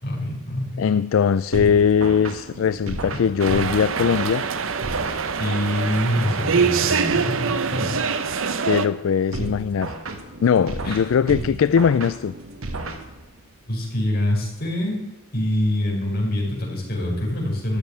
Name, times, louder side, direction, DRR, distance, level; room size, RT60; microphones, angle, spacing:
voice 1, 0.0-0.9 3.1-3.2 5.4-8.0 10.8-11.0 13.7-15.1 15.3-17.8, left 1 dB, 50° left, 5.1 m, -25 dB
voice 2, 0.8-4.4 8.6-9.9 10.4-12.3, left 7 dB, 70° left, 0.3 m, -20 dB
sound 1, 1.5-5.7 9.3-13.5, right 2 dB, 90° right, 1.7 m, -33 dB
sound 2, 3.4-8.9, right 5 dB, 70° right, 0.8 m, -24 dB
13.5 x 6.9 x 9.8 m
head